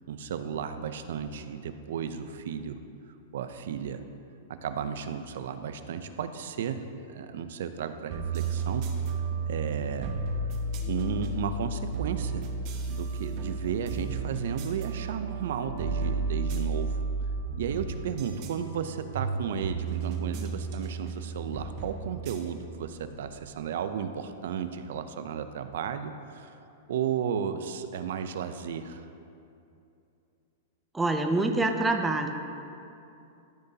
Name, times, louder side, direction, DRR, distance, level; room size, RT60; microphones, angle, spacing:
voice 1, 0.1-2.8 3.3-4.0 4.5-8.9 9.5-10.1 10.8-12.4 12.9-17.0 17.6-26.5 26.9-29.1, right 7 dB, 65° right, 10 dB, 0.5 m, -34 dB
sound 1, 8.1-23.4, right 3 dB, 35° right, 0.8 m, -33 dB
voice 2, 30.9-32.3, right 2 dB, 5° right, 4 dB, 0.4 m, -25 dB
13.5 x 6.8 x 2.8 m, 2.6 s
supercardioid pair, 165°, 0 cm